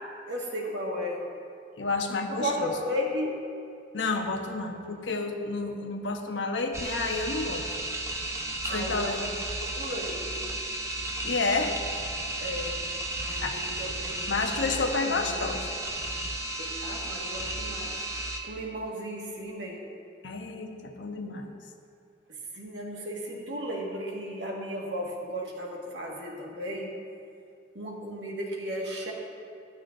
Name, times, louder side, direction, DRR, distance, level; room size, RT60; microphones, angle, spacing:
voice 1, 0.3-1.3 2.3-3.5 8.6-9.2 9.6-10.5 12.4-12.8 13.2-14.3 14.6-15.4 16.6-18.0 18.4-19.9 22.3-27.0 27.7-29.1, equal, 75° right, -2 dB, 1.8 m, -35 dB
voice 2, 1.8-2.7 3.9-7.7 8.6-9.3 11.2-11.7 13.4-13.6 14.3-15.6 20.2-21.5, left 3 dB, 85° left, 4 dB, 1.0 m, -30 dB
sound 1, 6.7-18.4, right 1 dB, 15° right, 0.7 m, -34 dB
15.5 x 11.5 x 2.7 m, 2.4 s
head